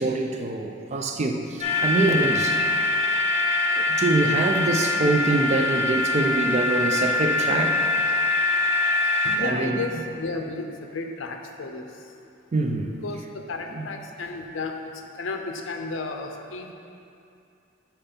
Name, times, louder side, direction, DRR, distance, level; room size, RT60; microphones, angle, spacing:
voice 1, 0.0-2.6 3.8-7.9 9.4-9.9 12.5-13.0 13.7-13.9, right 2 dB, 35° right, 3 dB, 0.4 m, -24 dB
sound 1, 1.6-9.4, left 2 dB, 35° left, 0.7 m, -23 dB
voice 2, 9.2-11.9 13.0-14.8 15.1-16.7, left 3 dB, 85° left, 4 dB, 0.6 m, -33 dB
5.3 x 4.4 x 5.7 m, 2.6 s
head